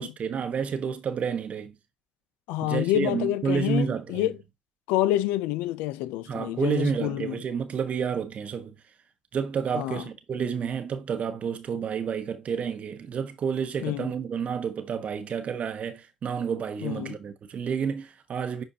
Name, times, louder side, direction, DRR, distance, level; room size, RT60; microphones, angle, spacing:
voice 1, 0.0-1.7 2.6-4.3 6.3-8.7 9.3-18.6, right 6 dB, 55° right, 1.4 m, -30 dB
voice 2, 2.5-4.4 4.9-7.4 9.7-10.0 13.8-14.1 16.8-17.2, left 14 dB, 85° left, 0.5 m, -27 dB
10.0 x 4.4 x 2.9 m
hypercardioid pair, 55°, 3 cm